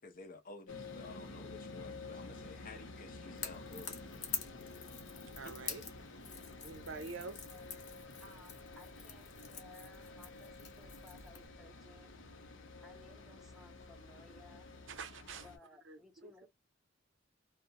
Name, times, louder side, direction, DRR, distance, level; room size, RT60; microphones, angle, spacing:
voice 1, 0.0-4.0 5.4-5.6, left 3 dB, 45° left, 0.6 m, -52 dB
sound 1, 0.7-15.6, left 3 dB, 85° left, 0.7 m, -51 dB
Crackle / Crack, 3.3-11.5, left 6 dB, 60° left, 1.0 m, -47 dB
voice 2, 5.4-5.8 6.6-7.5 14.9-15.5 15.8-16.5, right 4 dB, 70° right, 0.5 m, -46 dB
voice 3, 8.2-12.1 12.8-14.7 15.4-16.5, left 1 dB, ahead, 0.8 m, -60 dB
2.4 x 2.1 x 2.7 m
head